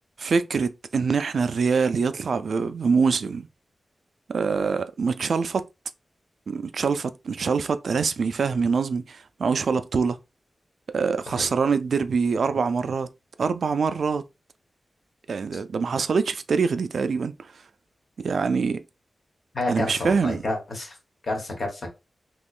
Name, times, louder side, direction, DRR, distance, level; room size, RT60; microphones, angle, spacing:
voice 1, 0.2-3.5 4.3-5.6 6.5-10.2 10.9-13.1 13.4-14.2 15.3-17.3 18.2-18.8 19.7-20.4, right 5 dB, 70° right, 0.3 m, -24 dB
voice 2, 19.5-20.9 21.2-21.9, left 2 dB, 50° left, 1.2 m, -29 dB
3.7 x 2.9 x 2.4 m
wide cardioid pair, 160°, 0 cm